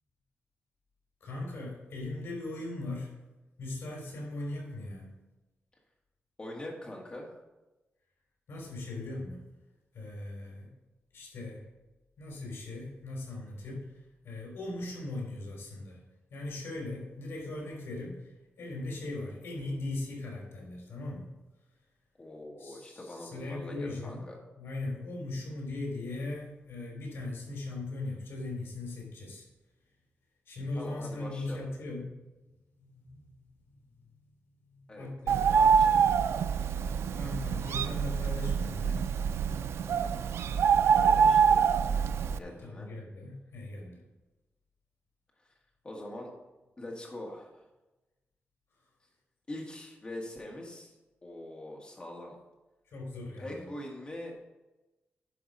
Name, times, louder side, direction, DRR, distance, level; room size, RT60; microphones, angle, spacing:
voice 1, 1.2-3.2 3.6-5.1 8.5-9.5 9.9-10.7 11.1-11.6 12.2-16.0 16.3-21.3 22.6-24.2 24.6-29.4 30.5-32.2 32.8-33.4 34.5-35.5 37.1-39.2 42.4-44.0 52.9-53.7, left 2 dB, 75° left, -2 dB, 3.6 m, -39 dB
voice 2, 6.4-7.3 22.2-24.4 30.7-31.7 34.9-36.1 37.5-37.6 40.9-41.7 42.4-42.9 45.4-45.5 45.8-46.3 46.8-47.6 49.5-51.0 51.2-52.4 53.4-54.4, left 1 dB, 25° left, -1 dB, 1.9 m, -43 dB
Bird, 35.3-42.4, right 7 dB, 85° right, 0.4 m, -25 dB
10.5 x 4.6 x 5.6 m, 1.1 s
wide cardioid pair, 160°, 4 cm